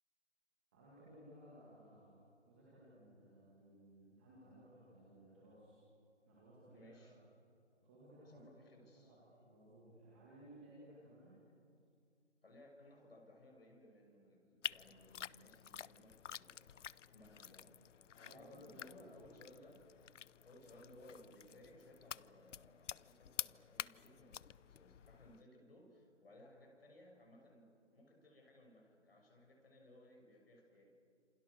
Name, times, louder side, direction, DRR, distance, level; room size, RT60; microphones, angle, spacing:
voice 1, 0.7-5.8 6.3-7.2 7.8-8.5 8.9-9.2 9.4-11.4 18.2-19.2, right 1 dB, 10° right, -8 dB, 2.2 m, -60 dB
voice 2, 6.7-7.2 8.2-9.2 12.4-17.7 18.3-20.0 20.4-30.9, left 1 dB, 55° left, 1 dB, 6.6 m, -62 dB
sound 1, 14.6-25.4, left 9 dB, 80° left, 0.5 m, -50 dB
27.5 x 27.0 x 6.7 m, 2.4 s
hypercardioid pair, 180°, 36 cm